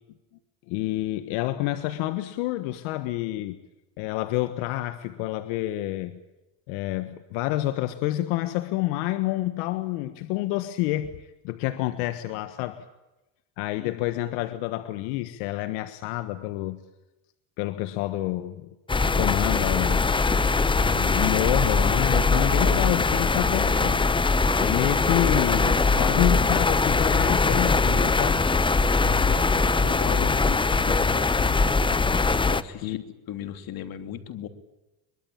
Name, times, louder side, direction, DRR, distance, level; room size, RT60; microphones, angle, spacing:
voice 1, 0.7-3.6 4.0-6.2 6.7-11.1 11.4-12.8 13.6-16.8 17.6-18.7 19.0-20.1 20.8-24.1 24.6-28.5 32.8-33.0, left 16 dB, 70° left, 11 dB, 1.6 m, -28 dB
voice 2, 3.0-3.4 13.8-14.0 29.0-31.3 32.5-33.0 33.3-34.5, left 10 dB, 45° left, 8 dB, 3.2 m, -37 dB
sound 1, 18.9-32.6, left 4 dB, 10° left, 0.8 m, -22 dB
23.0 x 23.0 x 8.8 m, 1.0 s
supercardioid pair, 110°, 47 cm